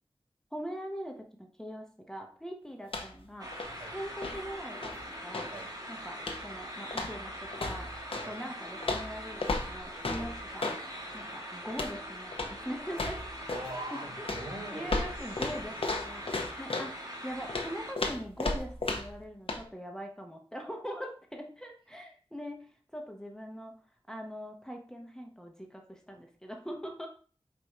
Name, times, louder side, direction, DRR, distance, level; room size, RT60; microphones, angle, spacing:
voice 1, 0.5-4.9 5.2-5.5 5.9-7.9 8.3-13.2 13.9-14.2 14.7-23.7 24.1-27.1, equal, 5° left, 1 dB, 0.7 m, -42 dB
sound 1, 2.8-3.3 3.5-5.6 6.2-6.6 6.9-8.3 8.8-10.8 11.7-12.0 12.3-12.6 12.9-13.7 14.3-16.9 17.5-19.2 19.5-19.6, left 3 dB, 70° left, 0.7 m, -35 dB
sound 2, 3.4-17.9, equal, 40° right, 1.6 m, -42 dB
voice 2, 13.5-16.4, right 1 dB, 65° right, -4 dB, 2.3 m, -44 dB
4.7 x 2.6 x 4.3 m, 0.41 s
wide cardioid pair, 70°, 10 cm